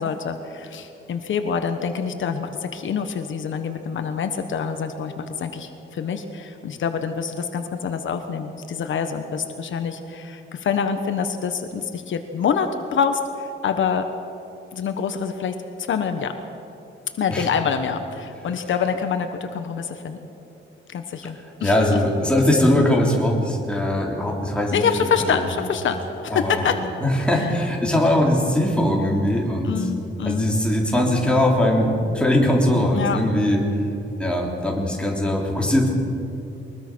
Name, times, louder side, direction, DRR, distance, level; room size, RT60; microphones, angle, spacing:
voice 1, 0.0-14.0 14.7-15.5 15.9-16.3 17.2-20.2 20.9-22.0 24.7-26.8 29.6-30.5 33.0-33.2, left 6 dB, 70° left, 7 dB, 1.3 m, -26 dB
voice 2, 21.6-25.5 26.3-26.7 27.0-29.9 30.3-33.6 34.2-35.9, left 1 dB, 5° left, -2 dB, 3.5 m, -21 dB
22.5 x 21.0 x 6.3 m, 2.8 s
wide cardioid pair, 150°, 21 cm